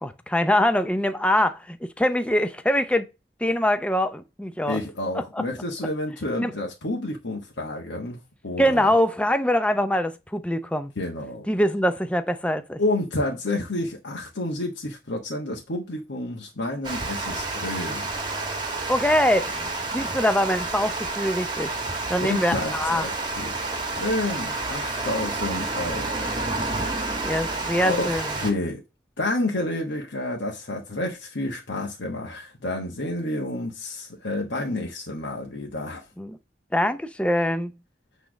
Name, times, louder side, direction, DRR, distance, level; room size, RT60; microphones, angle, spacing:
voice 1, 0.0-3.1 3.4-4.8 5.1-5.4 6.4-6.5 8.6-10.9 11.5-12.8 18.9-21.7 22.1-23.1 27.2-28.3 36.2-36.4 36.7-37.7, left 1 dB, 5° left, 0.5 m, -23 dB
voice 2, 4.7-8.9 11.0-11.5 12.8-18.1 20.0-20.1 22.2-23.6 23.9-26.3 27.8-28.8 29.2-36.0, left 2 dB, 90° left, 1.3 m, -30 dB
Water, 16.8-28.5, right 3 dB, 25° right, 1.2 m, -29 dB
8.4 x 3.3 x 6.2 m
head